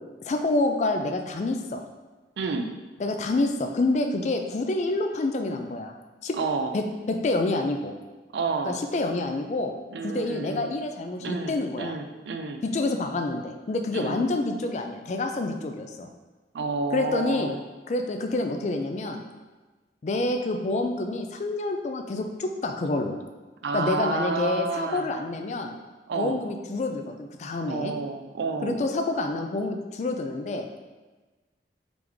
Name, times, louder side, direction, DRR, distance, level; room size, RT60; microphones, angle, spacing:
voice 1, 0.2-1.8 3.0-5.9 6.2-6.4 6.7-7.9 8.7-9.7 10.0-11.9 12.6-16.1 16.9-17.5 17.9-19.2 20.0-23.2 23.7-25.7 26.2-27.9 28.6-30.7, left 2 dB, 40° left, 5 dB, 0.3 m, -27 dB
voice 2, 2.4-2.7 6.4-6.7 8.3-8.8 9.9-10.7 11.2-12.6 13.9-14.2 16.5-17.6 23.6-25.1 26.1-26.4 27.7-28.8, right 4 dB, 75° right, 6 dB, 0.4 m, -30 dB
3.8 x 3.3 x 3.1 m, 1.3 s
head